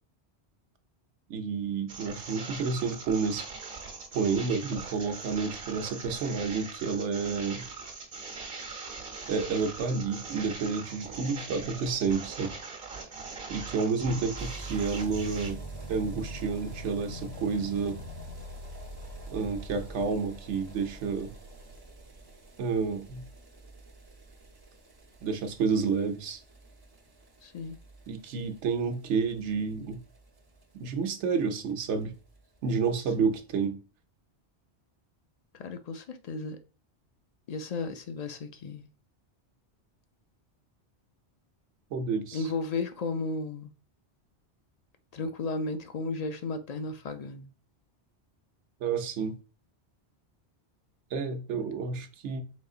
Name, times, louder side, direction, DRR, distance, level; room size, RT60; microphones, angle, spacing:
voice 1, 1.3-3.5 4.1-7.6 9.3-12.5 13.5-15.6 15.9-18.0 19.3-21.3 22.6-23.2 25.2-26.4 28.1-30.0 30.7-32.1 32.6-33.8 41.9-42.4 48.8-49.3 51.1-52.4, right 5 dB, 90° right, 1.0 m, -30 dB
sound 1, 1.9-15.5, right 4 dB, 55° right, 1.2 m, -41 dB
sound 2, 14.4-31.1 31.4-31.5 31.7-31.8 32.0-32.1 32.4-32.5 33.1-33.2, right 1 dB, 25° right, 0.5 m, -44 dB
voice 2, 27.4-27.8 33.2-33.3 35.5-36.6 37.5-38.9 42.3-43.7 45.1-47.5 51.6-51.7, left 3 dB, 55° left, 0.4 m, -34 dB
4.1 x 3.8 x 2.4 m
omnidirectional pair, 1.1 m